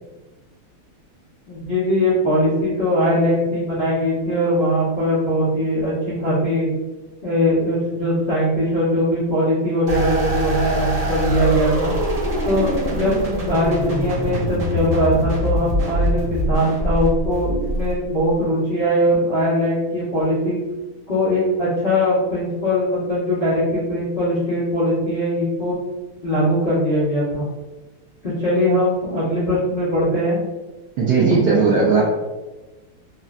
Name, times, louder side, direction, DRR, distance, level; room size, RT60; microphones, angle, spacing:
voice 1, 1.5-6.7 7.2-11.9 12.4-20.6 21.1-25.8 26.2-27.5 28.2-30.4, equal, 70° left, -13 dB, 0.5 m, -20 dB
sound 1, 9.9-18.3, equal, 55° right, 1.0 m, -23 dB
voice 2, 31.0-32.1, right 4 dB, 80° right, -5 dB, 0.9 m, -16 dB
3.7 x 2.1 x 2.4 m, 1.1 s
omnidirectional pair, 2.4 m